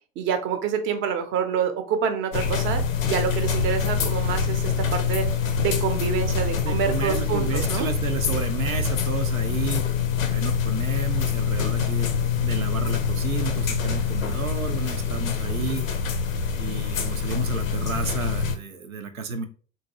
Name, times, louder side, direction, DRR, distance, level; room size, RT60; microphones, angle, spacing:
voice 1, 0.2-5.3 5.6-7.9, right 7 dB, 30° right, 8 dB, 0.6 m, -27 dB
sound 1, 2.3-18.6, left 6 dB, 75° left, 0.6 m, -25 dB
voice 2, 6.6-9.8 10.3-12.1 12.4-15.9 16.6-19.5, right 4 dB, 80° right, 7 dB, 0.5 m, -32 dB
3.7 x 2.7 x 2.8 m, 0.39 s
figure-of-eight pair, 75°, 40 cm